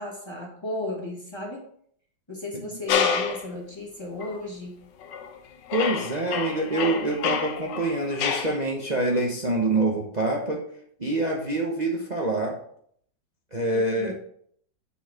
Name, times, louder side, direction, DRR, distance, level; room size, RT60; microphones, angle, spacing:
voice 1, 0.0-1.7 2.3-4.8 13.7-14.1, left 2 dB, 15° left, -3 dB, 1.2 m, -34 dB
sound 1, 2.9-3.5 4.2-4.4 5.0-5.4 5.7-8.6, left 6 dB, 65° left, 1.3 m, -28 dB
voice 2, 5.7-10.6 11.0-12.6 13.5-14.1, right 2 dB, 70° right, -1 dB, 0.4 m, -26 dB
6.9 x 4.7 x 4.8 m, 0.64 s
omnidirectional pair, 2.3 m